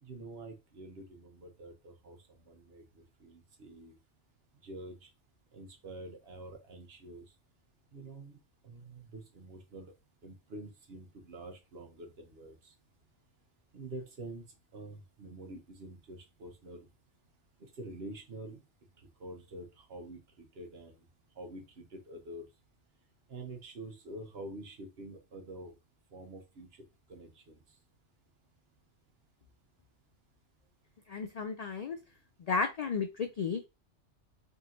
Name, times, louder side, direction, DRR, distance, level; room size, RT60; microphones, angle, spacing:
voice 1, 0.0-2.8 3.2-4.0 4.6-5.1 5.5-7.2 7.9-8.4 8.6-9.9 10.2-12.7 13.7-14.4 14.7-16.9 17.6-18.6 19.2-21.0 21.4-22.4 23.3-25.7 26.1-26.7 27.1-27.6, right 2 dB, 60° right, 4 dB, 1.2 m, -47 dB
voice 2, 31.1-32.0 32.4-33.7, left 5 dB, 65° left, 6 dB, 0.3 m, -33 dB
3.8 x 3.6 x 2.9 m, 0.26 s
omnidirectional pair, 1.2 m